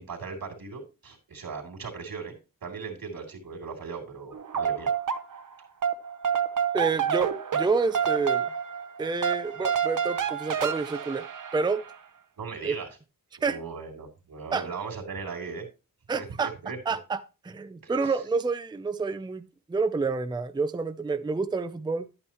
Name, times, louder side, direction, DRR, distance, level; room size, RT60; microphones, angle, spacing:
voice 1, 0.0-4.9 12.4-12.9 13.4-15.7 16.1-16.8 17.8-18.2, right 5 dB, 90° right, 3.1 m, -38 dB
sound 1, 4.3-5.5 5.8-12.0, right 8 dB, 65° right, 0.9 m, -28 dB
voice 2, 6.7-8.5 9.0-11.3 11.5-11.8 12.6-12.8 13.4-13.6 14.5-14.6 16.1-16.5 16.9-17.2 17.4-22.1, right 4 dB, 15° right, 0.4 m, -28 dB
11.0 x 8.8 x 3.0 m
wide cardioid pair, 170°, 34 cm